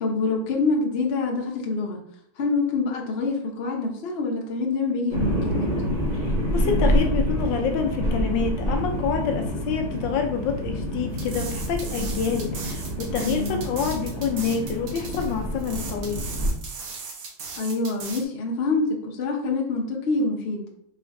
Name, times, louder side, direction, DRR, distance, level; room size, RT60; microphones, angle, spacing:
voice 1, 0.0-2.0 2.4-5.7 13.2-13.6 17.6-20.6, left 3 dB, 90° left, -1 dB, 0.5 m, -26 dB
sound 1, 5.1-16.5, equal, 55° right, 0.4 m, -27 dB
voice 2, 6.2-16.3, left 6 dB, 75° left, 3 dB, 1.1 m, -27 dB
sound 2, 11.1-18.2, right 5 dB, 90° right, 1.8 m, -38 dB
4.2 x 3.8 x 2.5 m, 0.73 s
omnidirectional pair, 2.4 m